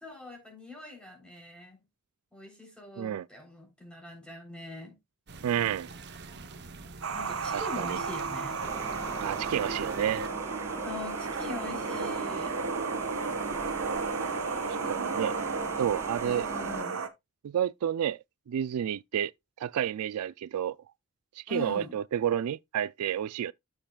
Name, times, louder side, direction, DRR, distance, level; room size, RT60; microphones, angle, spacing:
voice 1, 0.0-1.8 2.3-5.0 7.1-8.6 10.8-12.6 14.7-15.2 16.2-17.0 21.5-22.0, left 3 dB, 5° left, 3.4 m, -43 dB
sound 1, 5.3-10.3, right 3 dB, 50° right, 0.9 m, -45 dB
voice 2, 5.4-5.9 7.5-8.0 9.2-10.3 14.7-15.3 15.8-16.5 17.4-18.2 18.5-19.3 19.6-20.8 21.4-23.5, right 9 dB, 90° right, 0.3 m, -30 dB
sound 2, 7.0-17.1, right 4 dB, 70° right, 1.1 m, -33 dB
sound 3, 8.6-16.8, right 2 dB, 10° right, 0.4 m, -42 dB
13.0 x 5.6 x 2.3 m
head